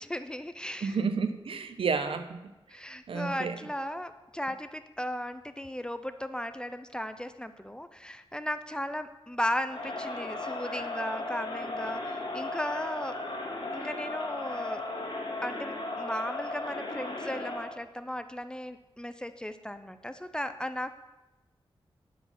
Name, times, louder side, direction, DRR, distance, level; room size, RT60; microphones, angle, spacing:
voice 1, 0.0-1.0 2.7-13.2 13.7-14.8 15.4-20.9, equal, 10° left, 10 dB, 0.5 m, -36 dB
voice 2, 0.8-2.4 3.1-3.6, right 5 dB, 70° right, 9 dB, 0.7 m, -30 dB
Crowd, 9.7-17.8, left 2 dB, 60° left, 1.8 m, -36 dB
11.5 x 4.8 x 5.7 m, 1.0 s
wide cardioid pair, 100°, 10 cm